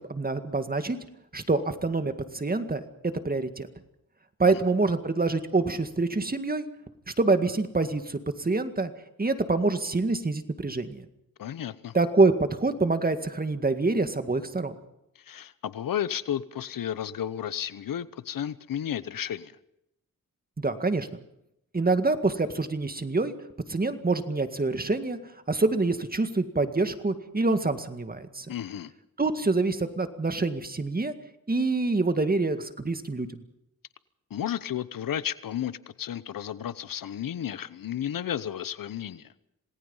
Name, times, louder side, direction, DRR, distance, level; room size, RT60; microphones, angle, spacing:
voice 1, 0.1-1.0 1.3-2.8 3.2-3.7 4.4-6.7 7.2-8.9 9.2-11.0 11.9-14.8 20.6-21.1 21.7-23.3 23.7-25.2 25.5-28.5 29.2-31.1 31.5-33.3, right 3 dB, 25° right, 8 dB, 1.9 m, -26 dB
voice 2, 11.4-11.9 15.2-19.5 28.5-28.9 34.3-39.3, left 10 dB, 80° left, 16 dB, 0.9 m, -33 dB
27.5 x 18.5 x 5.6 m, 0.81 s
cardioid pair, 75°, 33 cm